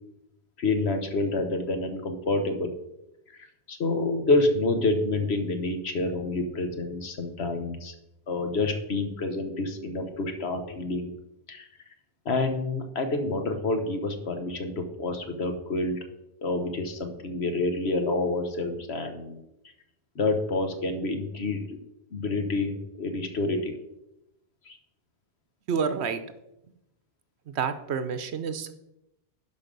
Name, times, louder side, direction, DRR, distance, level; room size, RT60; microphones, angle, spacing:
voice 1, 0.6-2.7 3.7-7.9 8.3-11.1 11.5-11.7 12.2-16.0 16.4-19.4 20.1-21.8 22.1-23.7 24.7-24.8, left 2 dB, 65° left, 6 dB, 1.4 m, -28 dB
voice 2, 25.7-26.2 27.5-28.7, right 6 dB, 70° right, 11 dB, 1.0 m, -29 dB
11.0 x 5.3 x 5.2 m, 0.88 s
omnidirectional pair, 1.2 m